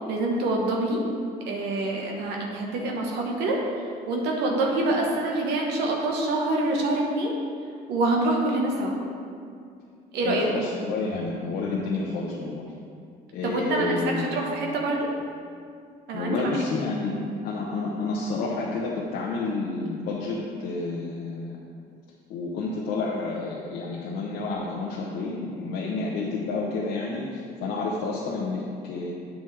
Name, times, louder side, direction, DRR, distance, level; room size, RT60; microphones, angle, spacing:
voice 1, 0.1-1.0 1.4-3.6 4.1-7.3 7.9-9.0 10.1-10.5 13.4-15.1 16.1-16.6, right 2 dB, 80° right, -1 dB, 1.2 m, -26 dB
voice 2, 10.2-12.6 13.3-14.4 16.1-17.2 17.4-21.6 22.3-29.1, left 3 dB, 80° left, -4 dB, 1.0 m, -30 dB
8.4 x 7.2 x 3.3 m, 2.3 s
cardioid pair, 110°, 17 cm